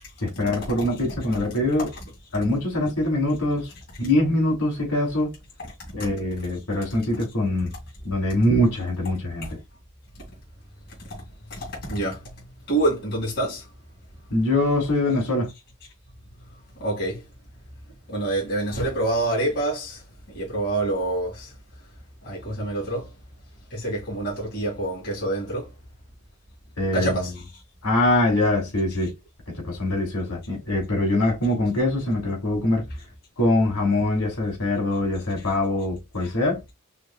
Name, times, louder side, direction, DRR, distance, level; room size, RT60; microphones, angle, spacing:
voice 1, 0.2-1.9 2.3-3.7 4.0-5.3 5.9-7.7 8.0-9.5 14.3-15.5 26.8-27.2 27.8-29.1 29.5-32.8 33.4-36.6, left 1 dB, 85° left, 3.0 m, -23 dB
voice 2, 11.5-12.3 12.7-13.6 16.8-17.2 18.1-20.0 20.3-21.5 22.2-23.1 23.7-25.7 26.9-27.4 35.4-35.5 36.2-36.3, right 2 dB, 50° left, 2.4 m, -27 dB
5.0 x 3.2 x 2.4 m
head